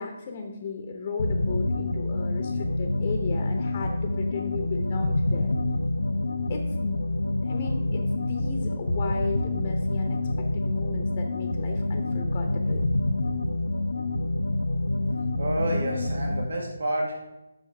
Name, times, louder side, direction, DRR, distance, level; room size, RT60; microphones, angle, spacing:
voice 1, 0.0-5.5 6.5-7.0 7.4-12.8, left 4 dB, 35° left, 4 dB, 0.9 m, -35 dB
sound 1, 1.2-16.6, left 2 dB, 70° left, 0.6 m, -27 dB
voice 2, 15.4-17.1, right 1 dB, 65° right, 0 dB, 1.8 m, -29 dB
6.1 x 5.8 x 4.7 m, 1.0 s
figure-of-eight pair, 150°, 0 cm